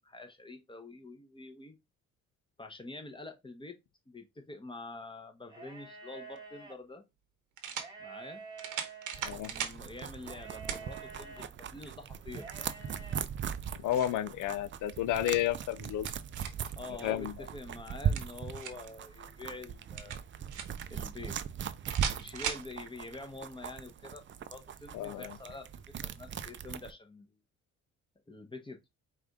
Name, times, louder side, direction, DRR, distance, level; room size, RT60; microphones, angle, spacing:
voice 1, 0.0-1.8 2.6-3.8 4.1-7.0 8.0-8.4 9.5-12.7 16.8-20.2 20.9-21.4 22.2-27.3 28.3-28.9, left 3 dB, 15° left, 1.0 m, -46 dB
Loud Sheep Bah, 5.4-6.7 7.7-9.4 10.2-11.5 12.3-13.2, right 5 dB, 15° right, 1.4 m, -48 dB
sound 1, 6.3-6.4 7.6-7.9 8.6-9.8 10.7-10.9 11.4-11.5 13.4-14.2 15.5-16.7 17.9-18.9 20.0-20.9 21.8-22.7, right 8 dB, 80° right, 0.9 m, -38 dB
sound 2, 9.1-26.9, right 8 dB, 40° right, 0.5 m, -39 dB
voice 2, 13.8-16.1 17.0-17.3 24.9-25.3, left 12 dB, 80° left, 0.5 m, -31 dB
4.8 x 2.6 x 3.6 m
cardioid pair, 90°, 30 cm